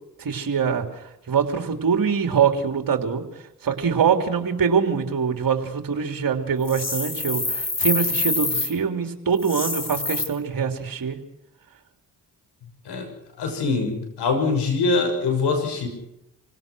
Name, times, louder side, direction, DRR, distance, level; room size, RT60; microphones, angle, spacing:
voice 1, 0.2-3.2 3.6-11.2, right 6 dB, 55° right, 5 dB, 3.3 m, -23 dB
sound 1, 6.6-8.7 9.4-10.2, left 3 dB, 40° left, 6.7 m, -26 dB
voice 2, 13.4-15.9, left 3 dB, 75° left, 4 dB, 6.5 m, -23 dB
26.5 x 17.0 x 6.3 m, 0.85 s
supercardioid pair, 45°, 41 cm